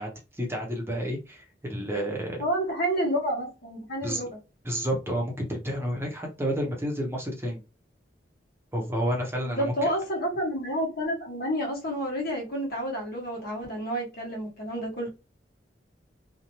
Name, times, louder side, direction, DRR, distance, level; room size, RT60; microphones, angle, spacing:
voice 1, 0.0-2.4 4.0-4.2 4.6-7.6 8.7-9.9, equal, 15° right, 0.7 m, -30 dB
voice 2, 2.4-4.3 9.4-15.1, equal, 55° left, 1.1 m, -29 dB
2.7 x 2.2 x 2.9 m
head